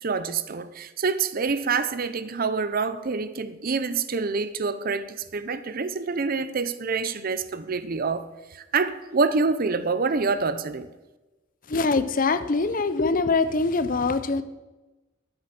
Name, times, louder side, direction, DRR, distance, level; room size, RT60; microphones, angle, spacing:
voice 1, 0.0-8.3 8.5-10.9, right 4 dB, 45° right, 0.6 m, -26 dB
voice 2, 11.7-14.4, left 3 dB, 40° left, 0.6 m, -23 dB
12.5 x 7.9 x 6.0 m
head